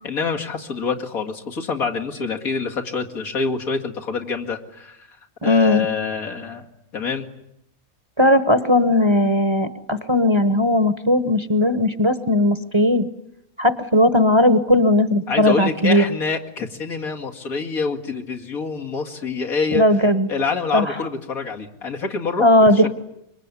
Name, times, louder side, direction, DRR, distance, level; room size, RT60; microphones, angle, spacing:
voice 1, 0.0-5.2 5.4-6.6 6.9-7.3 15.3-19.8 20.3-22.5 22.7-22.9, left 5 dB, 85° left, 1 dB, 2.7 m, -26 dB
voice 2, 5.4-5.8 8.2-13.1 13.6-16.0 19.7-20.3 20.7-20.9 22.4-22.9, left 1 dB, 20° right, 11 dB, 1.0 m, -17 dB
25.0 x 23.0 x 9.8 m, 0.81 s
omnidirectional pair, 1.5 m